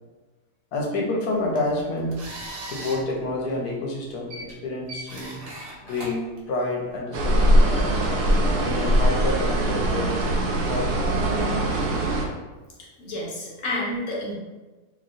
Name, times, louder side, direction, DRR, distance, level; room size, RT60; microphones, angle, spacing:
voice 1, 0.7-2.2 2.7-5.4 5.8-7.8 8.6-10.2 10.6-11.0, left 2 dB, 80° left, -1 dB, 1.2 m, -28 dB
sound 1, 1.3-7.0, right 1 dB, 65° right, 1.1 m, -40 dB
sound 2, 7.1-12.2, right 1 dB, 85° right, 1.1 m, -21 dB
voice 2, 13.0-14.3, left 1 dB, 60° left, -3 dB, 1.1 m, -29 dB
2.9 x 2.8 x 2.5 m, 1.2 s
omnidirectional pair, 1.6 m